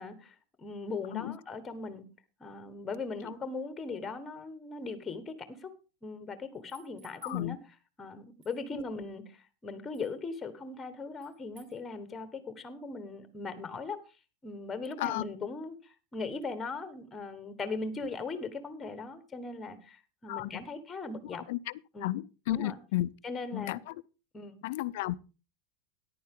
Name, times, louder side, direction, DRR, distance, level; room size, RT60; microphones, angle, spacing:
voice 1, 0.0-2.0 2.4-5.7 6.0-7.6 8.0-14.0 14.4-21.4 21.9-22.1 22.5-22.8 23.2-23.8 24.3-24.6, left 3 dB, 15° left, 1.4 m, -39 dB
sound 1, 6.5-7.4 8.4-8.6 9.9-10.1 11.2-11.8, right 7 dB, 45° right, 5.7 m, -58 dB
voice 2, 7.2-7.6 15.0-15.2 20.3-20.5 21.5-21.7 22.0-23.1 23.5-24.0 24.6-25.2, left 16 dB, 60° left, 0.5 m, -33 dB
14.0 x 10.5 x 3.7 m
supercardioid pair, 170°, 0 cm